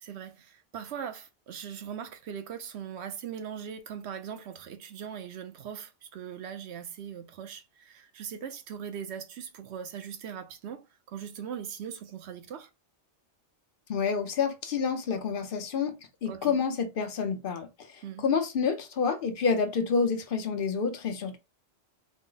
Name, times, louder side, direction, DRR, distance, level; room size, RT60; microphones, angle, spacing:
voice 1, 0.0-12.7 16.3-16.6 18.0-18.2, right 8 dB, 70° right, 0.9 m, -40 dB
voice 2, 13.9-21.4, left 5 dB, 55° left, 0.7 m, -29 dB
4.1 x 2.0 x 3.8 m
omnidirectional pair, 1.2 m